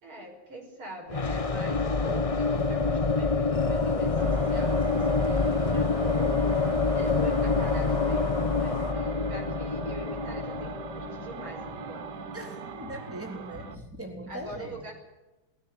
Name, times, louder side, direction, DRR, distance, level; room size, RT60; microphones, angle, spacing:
voice 1, 0.0-12.1 14.3-14.9, right 1 dB, 80° right, 2 dB, 6.5 m, -43 dB
sound 1, 1.1-12.9, left 3 dB, 30° left, 0.6 m, -27 dB
sound 2, 3.5-8.9, left 5 dB, 55° left, 2.8 m, -39 dB
sound 3, 4.2-13.8, right 7 dB, 55° right, 1.7 m, -41 dB
voice 2, 12.3-14.7, right 1 dB, 5° right, 1 dB, 3.7 m, -40 dB
20.0 x 16.0 x 9.6 m, 1.1 s
omnidirectional pair, 2.3 m